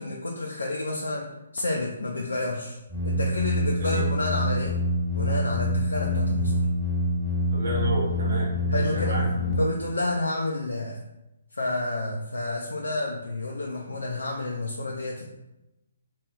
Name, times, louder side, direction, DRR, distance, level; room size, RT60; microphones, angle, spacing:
voice 1, 0.0-2.8 3.0-4.8 5.2-6.6 8.7-9.2 9.6-11.0 11.5-15.3, left 2 dB, 70° left, -1 dB, 0.4 m, -30 dB
sound 1, 2.9-9.5, equal, 20° left, 1.4 m, -26 dB
voice 2, 7.5-9.5, equal, 60° right, -4 dB, 1.3 m, -30 dB
3.0 x 2.8 x 2.8 m, 0.94 s
figure-of-eight pair, 135°, 0 cm